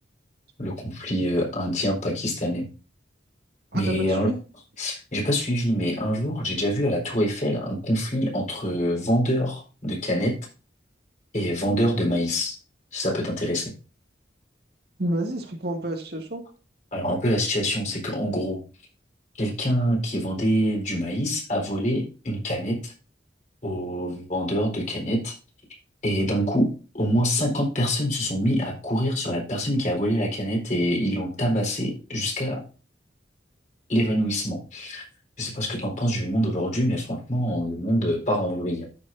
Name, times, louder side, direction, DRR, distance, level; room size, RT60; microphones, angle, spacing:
voice 1, 0.6-2.7 3.7-4.3 4.8-10.3 11.3-12.6 12.9-13.7 16.9-18.6 19.4-22.9 23.6-25.3 26.0-32.6 33.9-35.0 35.4-38.9, equal, 40° left, -1 dB, 4.3 m, -25 dB
voice 2, 3.7-4.4 15.0-16.4, right 1 dB, 60° right, 3 dB, 2.1 m, -29 dB
14.0 x 6.8 x 2.6 m, 0.35 s
head